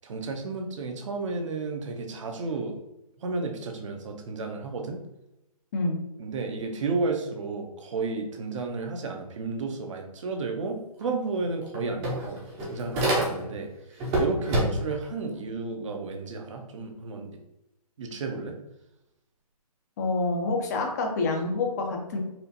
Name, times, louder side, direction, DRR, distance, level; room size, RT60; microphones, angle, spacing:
voice 1, 0.0-2.8 3.2-5.0 6.2-12.4 12.7-13.7 14.2-17.3 18.0-18.6, right 3 dB, 50° right, 4 dB, 0.7 m, -32 dB
sound 1, 11.0-11.1 11.4-13.6 14.0-15.0, right 1 dB, 15° right, 0.6 m, -27 dB
voice 2, 20.0-22.2, left 3 dB, 25° left, 2 dB, 0.5 m, -27 dB
4.3 x 2.4 x 2.7 m, 0.89 s
hypercardioid pair, 150°, 20 cm